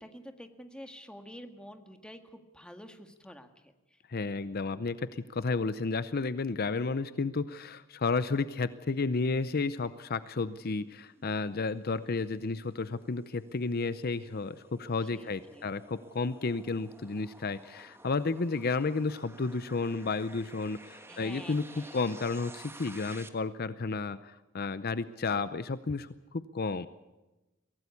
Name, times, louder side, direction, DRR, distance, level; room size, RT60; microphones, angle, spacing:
voice 1, 0.0-3.5 15.1-15.7 21.1-22.0, equal, 5° left, 6 dB, 1.8 m, -48 dB
voice 2, 4.1-26.9, left 4 dB, 50° left, 14 dB, 0.7 m, -32 dB
sound 1, 10.1-23.3, right 2 dB, 10° right, 1.4 m, -53 dB
23.5 x 17.0 x 8.4 m, 1.1 s
head